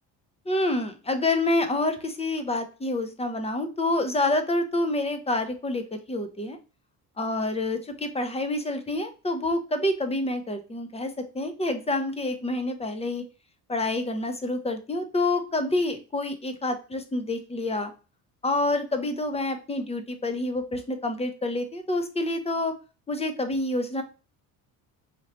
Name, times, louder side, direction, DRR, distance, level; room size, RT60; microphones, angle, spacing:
voice 1, 0.5-6.6 7.2-13.2 13.7-17.9 18.4-22.7 23.1-24.0, left 2 dB, 15° left, 7 dB, 0.8 m, -27 dB
4.2 x 2.9 x 3.0 m, 0.32 s
supercardioid pair, 70°, 46 cm